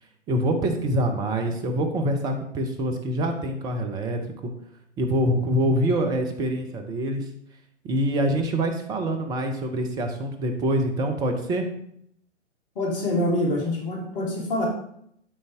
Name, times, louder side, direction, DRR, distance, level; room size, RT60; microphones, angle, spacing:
voice 1, 0.3-4.5 5.0-7.2 7.8-11.6, right 1 dB, 10° right, 5 dB, 0.7 m, -25 dB
voice 2, 12.8-14.7, left 1 dB, 45° left, -2 dB, 3.5 m, -25 dB
12.0 x 5.3 x 3.4 m, 0.70 s
figure-of-eight pair, 125°, 37 cm